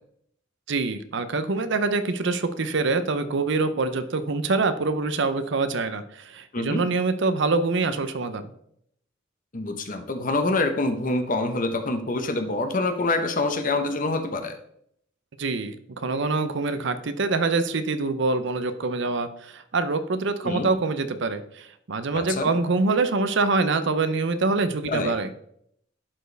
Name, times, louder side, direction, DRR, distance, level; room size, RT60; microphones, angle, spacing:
voice 1, 0.7-8.5 15.4-25.3, right 3 dB, 65° right, 10 dB, 0.7 m, -25 dB
voice 2, 9.5-14.6 20.4-20.7 22.1-22.4 24.9-25.1, left 2 dB, 45° left, 7 dB, 0.9 m, -26 dB
11.5 x 4.5 x 3.4 m, 0.70 s
head